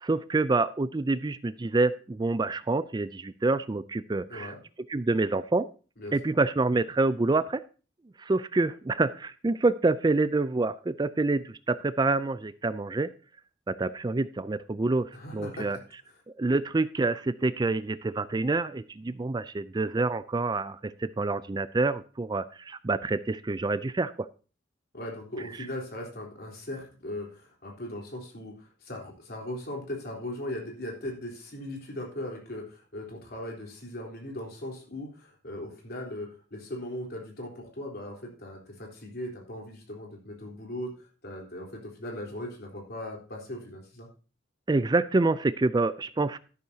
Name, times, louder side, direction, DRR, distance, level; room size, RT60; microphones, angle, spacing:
voice 1, 0.0-4.5 4.9-5.7 6.1-7.6 8.2-13.1 13.7-15.8 16.4-24.3 44.7-46.4, right 3 dB, 20° right, 15 dB, 0.4 m, -27 dB
voice 2, 15.1-15.8 24.9-44.1, left 1 dB, 55° left, -1 dB, 3.7 m, -39 dB
12.5 x 11.5 x 2.8 m, 0.35 s
head